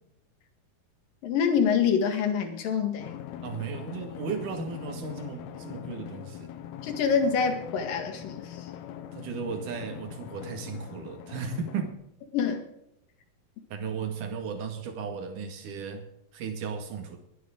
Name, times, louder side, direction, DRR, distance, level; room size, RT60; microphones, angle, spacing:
voice 1, 1.2-3.1 6.8-8.7 12.3-12.6, left 6 dB, 65° left, 5 dB, 3.5 m, -26 dB
Drum, 3.0-11.9, left 10 dB, 80° left, 2.9 m, -42 dB
voice 2, 3.4-6.5 9.1-12.0 13.7-16.0 16.3-17.2, right 5 dB, 60° right, 4 dB, 3.4 m, -35 dB
23.0 x 9.7 x 3.8 m, 0.80 s
omnidirectional pair, 4.4 m